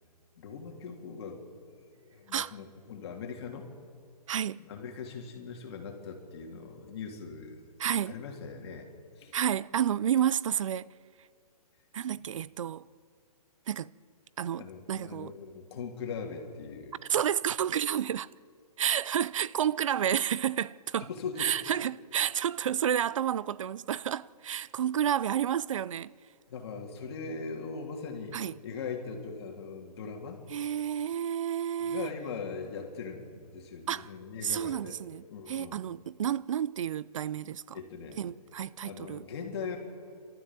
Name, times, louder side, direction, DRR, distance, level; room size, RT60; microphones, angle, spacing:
voice 1, 0.4-3.7 4.6-7.6 8.1-8.9 9.2-9.4 14.6-16.9 21.0-21.6 26.5-28.4 28.6-30.4 31.8-34.9 35.3-35.9 37.7-38.2 38.8-39.8, left 5 dB, 40° left, 3.2 m, -40 dB
voice 2, 4.3-4.6 7.8-8.2 9.3-10.9 11.9-12.8 13.7-13.9 14.4-15.3 17.1-18.3 18.8-21.1 21.4-26.1 28.3-28.6 30.5-32.1 33.9-34.1 34.4-37.8 38.2-39.3, right 9 dB, 55° right, 0.5 m, -30 dB
29.5 x 13.5 x 7.5 m
hypercardioid pair, 165°, 20 cm